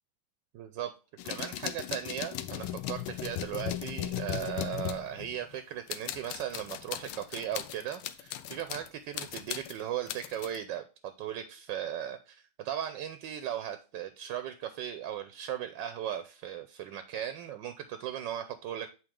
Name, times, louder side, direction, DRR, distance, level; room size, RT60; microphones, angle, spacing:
voice 1, 0.5-0.9 1.2-18.9, right 10 dB, 75° right, 9 dB, 1.2 m, -37 dB
sound 1, 1.2-5.6 5.9-8.9 9.1-10.6, left 12 dB, 85° left, 1.4 m, -37 dB
7.8 x 4.0 x 3.6 m, 0.33 s
omnidirectional pair, 2.2 m